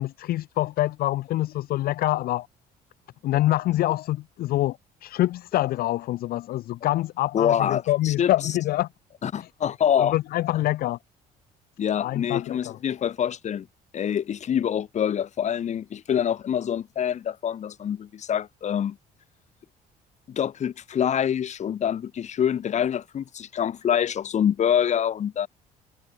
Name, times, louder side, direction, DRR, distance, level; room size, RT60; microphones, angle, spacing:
voice 1, 0.0-2.5 3.2-8.9 9.4-9.5 10.0-11.0 12.0-12.7, left 15 dB, 65° left, 0.5 m, -25 dB
voice 2, 7.3-8.3 9.2-10.1 11.8-13.7 13.9-19.0 20.3-25.5, left 9 dB, 45° left, 1.1 m, -25 dB
cardioid pair, 110°, 17 cm